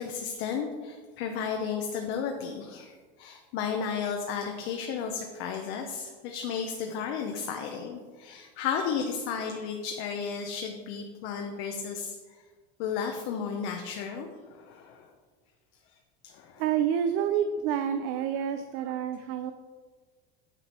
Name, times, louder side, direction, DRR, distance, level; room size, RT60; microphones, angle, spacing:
voice 1, 0.0-12.1 12.8-15.1 16.2-16.6, left 6 dB, 45° left, 3 dB, 0.7 m, -33 dB
voice 2, 16.6-19.5, right 8 dB, 85° right, 9 dB, 0.6 m, -28 dB
9.0 x 6.0 x 4.3 m, 1.5 s
cardioid pair, 180°, 30 cm